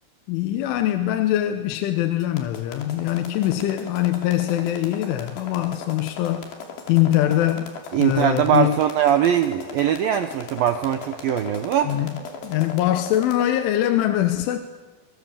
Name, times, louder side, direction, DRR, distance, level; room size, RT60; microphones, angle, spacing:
voice 1, 0.3-6.5 6.9-7.7 8.0-8.8 11.9-12.1 12.4-14.6, left 13 dB, 85° left, 7 dB, 3.5 m, -22 dB
Boolean Acid Hats, 2.2-13.5, left 4 dB, 65° left, 4.6 m, -38 dB
voice 2, 7.9-11.9, right 10 dB, 80° right, 7 dB, 2.1 m, -21 dB
26.5 x 24.0 x 7.3 m, 1.3 s
omnidirectional pair, 5.5 m